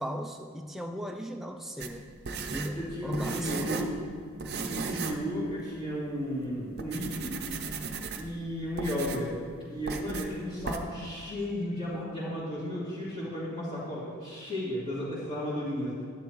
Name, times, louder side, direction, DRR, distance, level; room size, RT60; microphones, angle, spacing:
voice 1, 0.0-2.1 2.5-3.9, equal, ahead, 3 dB, 0.3 m, -37 dB
sound 1, 1.8-4.0 4.4-5.3 5.6-5.7 6.3-6.5 6.8-8.4 8.8-9.3 9.9-10.3 10.7-10.8, right 4 dB, 45° right, 0.6 m, -36 dB
voice 2, 2.7-3.9 4.5-7.4 8.2-9.3 9.7-15.9, equal, 30° left, -12 dB, 2.6 m, -34 dB
11.0 x 10.5 x 3.1 m, 2.2 s
head